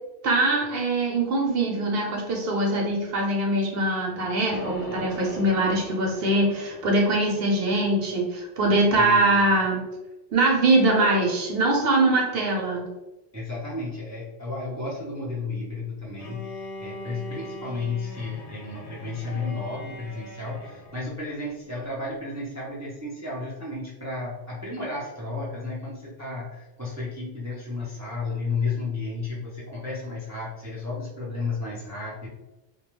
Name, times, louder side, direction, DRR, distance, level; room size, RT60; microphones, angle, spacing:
voice 1, 0.2-9.8 10.3-12.9, right 2 dB, 65° right, -1 dB, 0.8 m, -22 dB
sound 1, 4.5-8.6, equal, 45° left, 0.4 m, -40 dB
voice 2, 9.0-9.5 13.3-32.3, left 3 dB, 25° right, -6 dB, 0.3 m, -33 dB
Bowed string instrument, 16.2-21.1, left 1 dB, 75° left, 0.8 m, -40 dB
2.3 x 2.2 x 3.0 m, 1.0 s
omnidirectional pair, 1.1 m